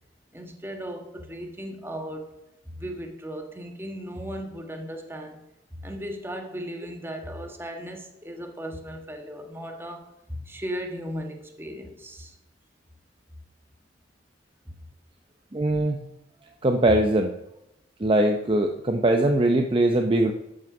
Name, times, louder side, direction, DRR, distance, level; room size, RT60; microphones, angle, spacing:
voice 1, 0.3-2.3 2.7-5.4 5.7-12.4 14.6-14.8 16.8-16.9, equal, 15° right, 3 dB, 1.4 m, -36 dB
voice 2, 15.5-16.0 16.6-17.3 18.0-20.3, right 1 dB, 30° right, 4 dB, 0.7 m, -21 dB
12.5 x 6.4 x 6.0 m, 0.87 s
head